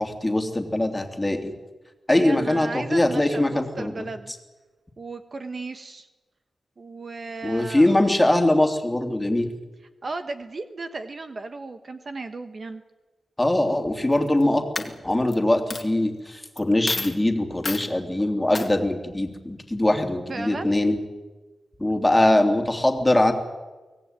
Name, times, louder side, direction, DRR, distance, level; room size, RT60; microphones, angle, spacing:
voice 1, 0.0-1.5 2.1-4.1 7.4-9.5 13.4-21.0 21.8-23.3, left 1 dB, 10° left, 4 dB, 3.0 m, -22 dB
voice 2, 2.1-4.3 5.0-6.1 6.8-7.9 10.0-12.8 20.3-20.7, right 3 dB, 45° right, 8 dB, 1.3 m, -35 dB
Coin (dropping), 14.1-14.4 14.7-15.3 15.7-15.8 16.6-16.7 16.9-17.2 17.6-17.9 18.5-18.7, left 3 dB, 35° left, 2.1 m, -30 dB
24.0 x 17.5 x 9.1 m, 1.2 s
wide cardioid pair, 100°, 0 cm